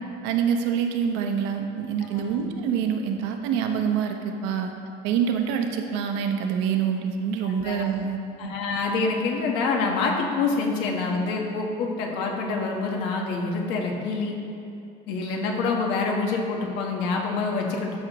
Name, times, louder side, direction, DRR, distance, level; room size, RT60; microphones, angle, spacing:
voice 1, 0.2-4.7 5.0-8.2, right 7 dB, 90° right, 4 dB, 0.8 m, -26 dB
voice 2, 2.1-2.4 7.4-7.8 8.4-14.4 15.1-18.0, left 4 dB, 75° left, 1 dB, 1.2 m, -26 dB
12.5 x 6.1 x 3.0 m, 2.6 s
cardioid pair, 175°, 18 cm